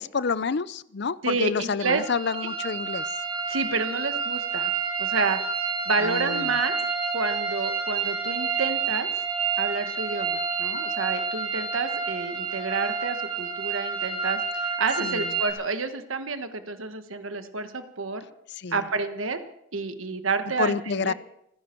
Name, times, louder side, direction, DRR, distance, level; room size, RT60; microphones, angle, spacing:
voice 1, 0.0-3.1 6.0-6.6 15.0-15.3 18.6-18.8 20.6-21.1, left 5 dB, 55° left, 18 dB, 0.5 m, -28 dB
voice 2, 1.2-2.0 3.5-4.7 5.0-5.4 5.8-6.9 7.1-9.1 9.6-18.2 18.7-19.4 19.7-20.8 21.0-21.1, right 4 dB, 75° right, 9 dB, 1.3 m, -29 dB
sound 1, 1.9-15.5, right 5 dB, 25° right, 3.3 m, -29 dB
28.0 x 10.5 x 4.5 m, 0.77 s
head